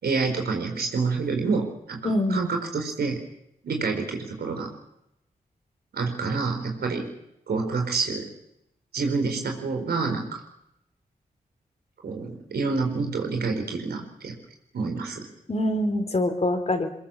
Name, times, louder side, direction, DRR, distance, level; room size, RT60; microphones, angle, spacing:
voice 1, 0.0-2.0 2.3-3.2 3.6-4.7 5.9-7.1 7.5-8.2 8.9-10.4 12.0-14.3 14.7-15.3, right 4 dB, 85° right, 4 dB, 4.5 m, -27 dB
voice 2, 2.0-2.4 15.5-16.9, left 1 dB, 40° left, 7 dB, 3.7 m, -24 dB
23.0 x 21.0 x 7.3 m, 0.81 s
cardioid pair, 55°, 16 cm